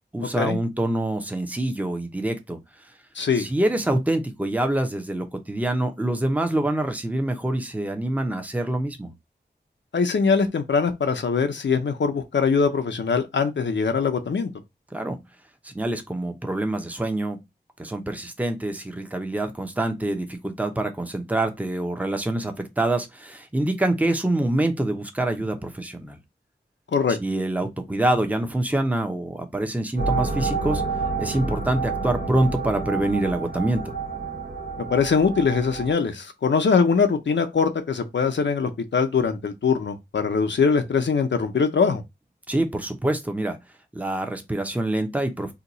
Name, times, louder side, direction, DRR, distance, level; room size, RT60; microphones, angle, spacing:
voice 1, 0.1-2.6 3.4-9.1 14.9-15.2 15.6-17.4 17.8-26.2 27.1-30.8 31.2-33.9 42.5-43.6 43.9-45.5, right 1 dB, 10° right, 0.6 m, -25 dB
voice 2, 3.2-3.5 9.9-14.5 26.9-27.2 34.8-42.0, left 5 dB, 80° left, 0.6 m, -22 dB
sound 1, 30.0-35.9, right 4 dB, 65° right, 0.7 m, -29 dB
2.8 x 2.3 x 3.9 m
wide cardioid pair, 55°, 18 cm